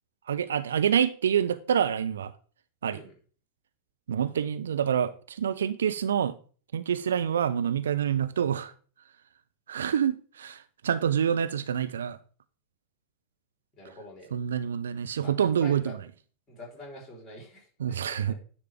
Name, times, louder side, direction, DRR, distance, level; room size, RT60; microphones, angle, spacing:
voice 1, 0.3-2.3 2.8-3.0 4.1-6.4 6.7-8.7 9.7-12.2 14.3-15.8 17.8-18.3, right 8 dB, 65° right, 0.4 m, -27 dB
voice 2, 13.8-14.3 15.2-15.9 16.5-18.4, left 1 dB, 20° left, 3.7 m, -46 dB
9.8 x 3.3 x 4.8 m
figure-of-eight pair, 90°, 0 cm